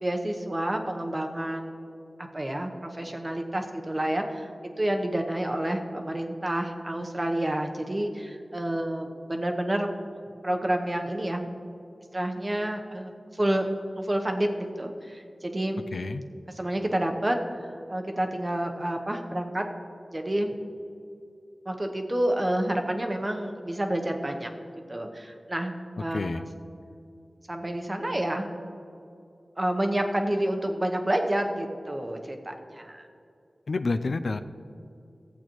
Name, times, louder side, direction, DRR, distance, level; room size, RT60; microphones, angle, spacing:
voice 1, 0.0-1.7 2.2-4.5 4.8-9.9 10.4-11.4 12.1-13.7 14.0-15.8 16.6-17.4 17.9-19.6 20.1-20.5 21.7-24.5 24.9-25.7 26.0-26.4 27.5-28.5 29.6-33.0, right 1 dB, 25° right, 4 dB, 0.8 m, -29 dB
voice 2, 15.9-16.2 26.1-26.5 33.7-34.4, left 3 dB, 75° left, 9 dB, 0.4 m, -29 dB
15.0 x 8.2 x 3.0 m, 2.5 s
wide cardioid pair, 90°, 0 cm